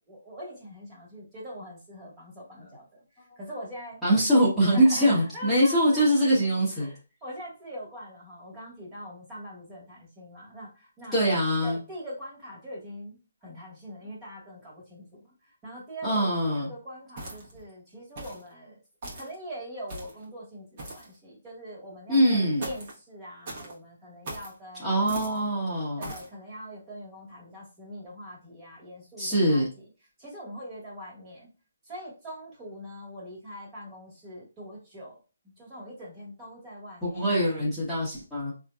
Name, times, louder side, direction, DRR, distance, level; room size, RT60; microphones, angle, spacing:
voice 1, 0.1-2.9 3.4-4.0 4.7-6.1 6.8-11.2 11.6-18.8 19.1-25.6 26.0-29.7 30.2-31.5 31.8-35.2 35.6-37.3, equal, 20° right, -5 dB, 1.5 m, -43 dB
voice 2, 4.0-6.9 11.1-11.8 16.0-16.7 22.1-22.6 24.8-26.0 29.2-29.7 37.0-38.5, equal, ahead, -13 dB, 1.1 m, -23 dB
sound 1, 17.2-17.6 18.2-18.5 19.0-19.3 19.9-20.2 20.8-21.1 22.6-23.0 23.4-23.7 24.2-24.5 25.1-25.4 26.0-26.3, right 2 dB, 40° right, 1.2 m, -40 dB
3.6 x 2.7 x 2.3 m, 0.33 s
hypercardioid pair, 160°, 0 cm